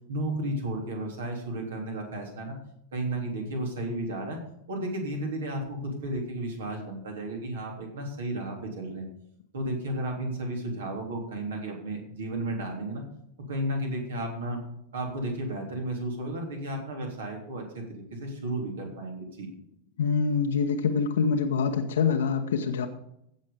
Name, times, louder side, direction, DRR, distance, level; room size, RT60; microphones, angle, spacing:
voice 1, 0.1-2.6 2.9-4.4 4.7-9.1 9.5-13.0 13.5-14.6 14.9-19.5, right 1 dB, 60° right, 1 dB, 3.4 m, -33 dB
voice 2, 20.0-22.9, left 5 dB, 60° left, 4 dB, 1.0 m, -25 dB
15.5 x 6.4 x 5.2 m, 0.75 s
figure-of-eight pair, 90°, 0 cm